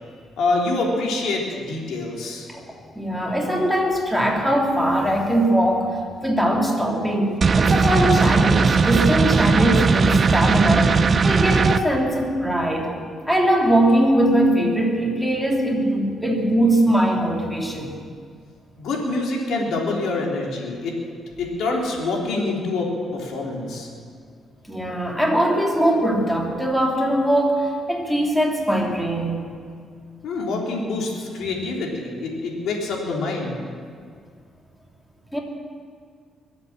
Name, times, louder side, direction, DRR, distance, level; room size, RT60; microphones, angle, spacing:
voice 1, 0.4-2.5 18.8-21.0 21.4-23.9 30.2-33.6, left 3 dB, 75° left, -1 dB, 3.5 m, -26 dB
voice 2, 2.5-11.0 11.2-12.9 13.3-17.9 24.7-29.4 35.3-35.4, right 1 dB, ahead, -1 dB, 2.9 m, -21 dB
sound 1, 7.4-11.8, right 5 dB, 40° right, 0.6 m, -18 dB
23.0 x 8.2 x 7.4 m, 2.1 s
cardioid pair, 90°, 0 cm